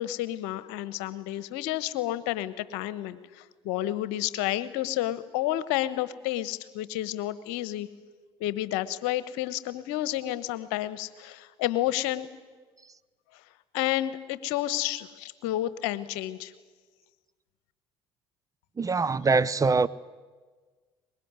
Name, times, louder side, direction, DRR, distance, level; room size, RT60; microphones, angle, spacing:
voice 1, 0.0-7.9 8.4-12.3 13.7-16.5, left 14 dB, 75° left, 1.2 m, -30 dB
voice 2, 18.8-19.9, right 4 dB, 25° right, 0.9 m, -23 dB
23.0 x 21.0 x 9.7 m
hypercardioid pair, 60°, 13 cm